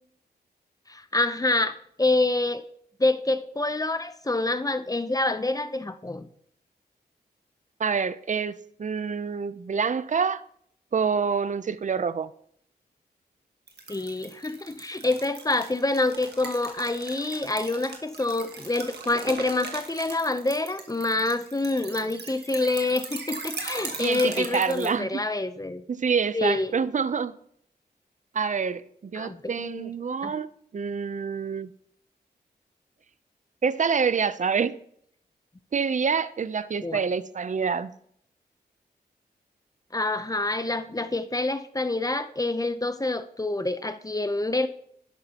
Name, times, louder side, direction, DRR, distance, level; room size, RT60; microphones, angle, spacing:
voice 1, 0.9-2.6 3.0-6.3 13.9-25.8 26.3-26.7 29.1-29.9 30.2-30.3 36.8-37.0 39.9-44.7, left 2 dB, 20° left, 0.7 m, -27 dB
voice 2, 7.8-10.4 10.9-12.3 24.0-25.2 25.9-27.3 28.3-31.7 33.6-34.8 35.7-37.9, right 6 dB, 45° right, 0.6 m, -27 dB
sound 1, 13.7-24.9, right 4 dB, 75° right, 1.7 m, -39 dB
11.5 x 11.5 x 2.9 m
cardioid pair, 55°, 17 cm